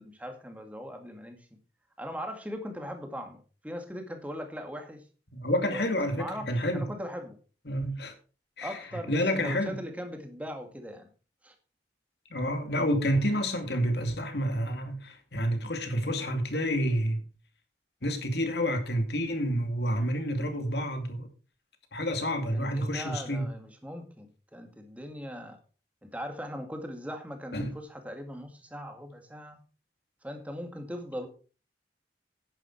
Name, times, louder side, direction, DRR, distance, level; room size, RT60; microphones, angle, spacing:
voice 1, 0.0-1.5 2.0-5.0 5.7-5.8 6.1-7.4 8.6-11.1 11.4-11.6 22.2-25.6 26.0-29.6 30.2-31.3, equal, 10° right, 2.0 m, -40 dB
voice 2, 5.3-6.9 7.7-8.1 8.6-8.8 9.1-9.8 12.3-17.2 18.0-21.3 21.9-23.5 27.5-27.8, equal, 60° left, 2.4 m, -29 dB
10.5 x 9.9 x 4.6 m
head